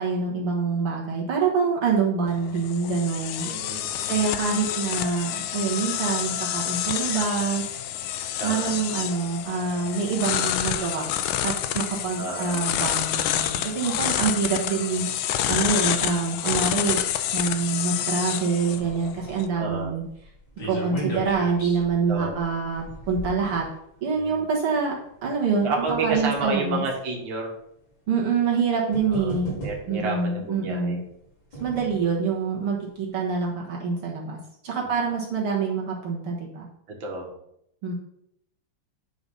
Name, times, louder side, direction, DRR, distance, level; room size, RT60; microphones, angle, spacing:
voice 1, 0.0-7.8 8.4-11.0 11.4-17.0 17.3-20.0 20.7-23.6 24.0-24.9 25.2-26.8 28.1-29.5 29.9-31.0 31.6-34.4 34.6-36.7 37.8-37.9, right 5 dB, 80° right, -2 dB, 2.4 m, -26 dB
sound 1, 2.3-19.5, left 11 dB, 80° left, 1.5 m, -28 dB
voice 2, 3.4-4.2 8.4-8.8 12.2-12.7 19.5-19.9 22.1-22.4 24.1-24.4 25.6-27.5 29.0-29.4 29.6-31.0 34.8-34.9 37.0-37.3, right 3 dB, 65° right, -1 dB, 2.3 m, -30 dB
sound 2, 18.7-24.2 25.1-26.6 27.4-27.5 28.5-28.6 28.9-30.1 31.0-32.1 32.6-32.7 32.9-33.0, right 1 dB, 60° left, 3.8 m, -37 dB
9.8 x 4.0 x 5.4 m, 0.75 s
omnidirectional pair, 2.4 m